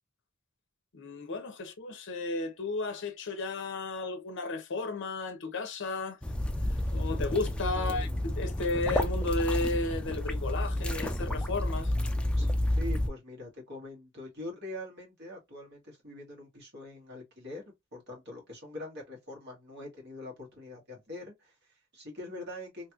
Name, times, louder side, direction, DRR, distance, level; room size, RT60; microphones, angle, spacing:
voice 1, 0.9-6.2 6.7-11.9, left 3 dB, 60° left, 0.7 m, -33 dB
sound 1, 6.2-13.1, left 1 dB, 5° left, 0.3 m, -30 dB
voice 2, 7.7-8.1 12.4-12.5 12.8-22.9, left 1 dB, 55° right, 1.7 m, -44 dB
3.1 x 2.9 x 2.3 m
head